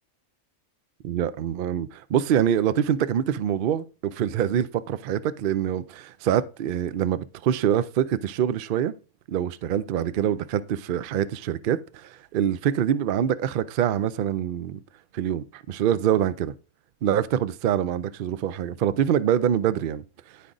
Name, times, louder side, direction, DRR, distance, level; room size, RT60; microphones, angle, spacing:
voice 1, 1.0-8.9 9.3-14.8 15.1-16.5 17.0-20.0, right 10 dB, 60° right, 0.5 m, -25 dB
10.5 x 4.9 x 3.9 m
omnidirectional pair, 1.4 m